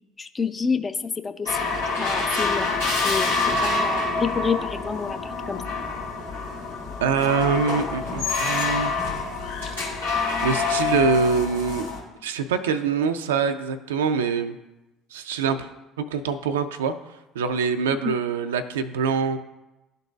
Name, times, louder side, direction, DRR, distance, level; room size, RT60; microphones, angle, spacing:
voice 1, 0.2-1.7 2.0-2.7 3.0-5.2 5.5-5.6, left 5 dB, 25° left, 10 dB, 0.5 m, -28 dB
sound 1, 1.5-12.0, left 4 dB, 90° left, 2.1 m, -26 dB
voice 2, 7.0-8.9 10.4-11.9 12.2-14.5 15.1-15.7 16.1-16.9 17.4-19.4, right 6 dB, 75° right, 9 dB, 0.3 m, -24 dB
11.5 x 3.9 x 2.3 m, 1.0 s
figure-of-eight pair, 60°, 0 cm